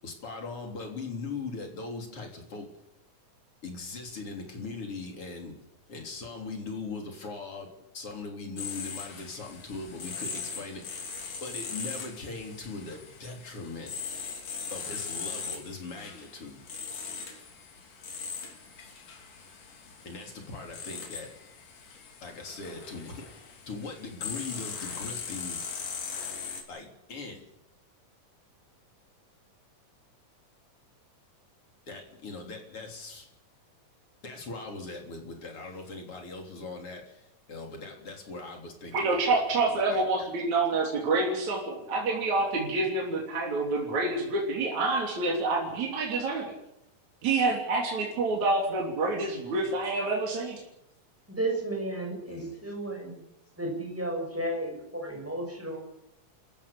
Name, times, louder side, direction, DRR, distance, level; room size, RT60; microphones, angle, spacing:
voice 1, 0.0-2.7 3.6-5.5 5.9-7.7 7.9-11.1 11.4-13.9 14.7-16.7 20.0-21.3 22.2-23.4 23.7-25.6 26.7-27.4 31.9-33.3 34.2-40.3 52.3-52.6, left 3 dB, 45° left, 2 dB, 4.3 m, -40 dB
sound 1, 8.6-26.6, left 6 dB, 70° left, 4.5 m, -40 dB
voice 2, 38.9-46.5 47.2-50.6, right 3 dB, 60° right, -2 dB, 4.5 m, -27 dB
voice 3, 51.3-53.2 53.6-55.8, right 1 dB, 5° right, 2 dB, 5.9 m, -33 dB
28.0 x 15.0 x 7.2 m, 0.86 s
omnidirectional pair, 3.8 m